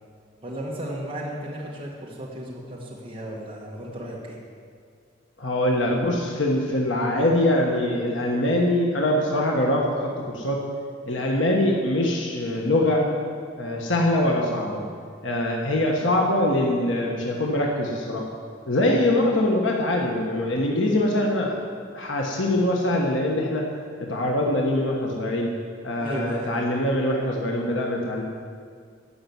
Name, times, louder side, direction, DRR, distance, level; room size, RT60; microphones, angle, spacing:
voice 1, 0.4-4.4 26.0-26.6, equal, 30° right, -3 dB, 1.6 m, -34 dB
voice 2, 5.4-10.6 11.1-13.0 13.6-14.8 15.2-18.2 18.7-21.5 21.9-23.6 24.0-25.5 25.8-28.2, left 1 dB, 80° left, -1 dB, 1.5 m, -23 dB
14.0 x 5.9 x 9.4 m, 2.1 s
head